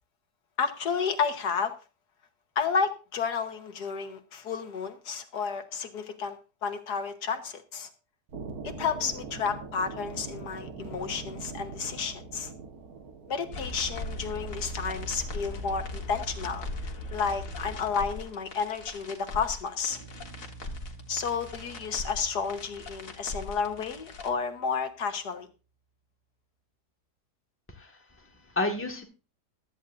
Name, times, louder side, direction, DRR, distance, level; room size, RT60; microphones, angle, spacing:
voice 1, 0.6-1.7 2.5-7.9 8.6-12.5 13.3-20.0 21.1-25.5, left 6 dB, 75° left, 8 dB, 1.7 m, -31 dB
sound 1, 8.3-18.2, right 4 dB, 60° right, 1.8 m, -44 dB
sound 2, 13.5-24.3, left 1 dB, 55° left, 1.8 m, -39 dB
sound 3, 19.9-25.1, right 3 dB, 85° right, 1.9 m, -51 dB
voice 2, 27.7-29.0, left 2 dB, 10° left, 2 dB, 1.6 m, -32 dB
15.5 x 13.0 x 2.6 m, 0.31 s
omnidirectional pair, 1.8 m